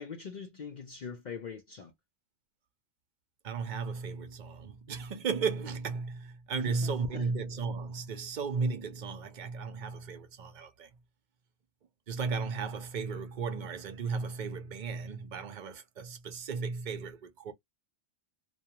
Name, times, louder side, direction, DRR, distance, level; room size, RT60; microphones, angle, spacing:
voice 1, 0.0-1.9 6.5-7.3, left 6 dB, 55° left, 0.5 m, -43 dB
voice 2, 3.4-10.9 12.1-17.5, right 5 dB, 50° right, 0.7 m, -35 dB
2.3 x 2.2 x 2.8 m
omnidirectional pair, 1.1 m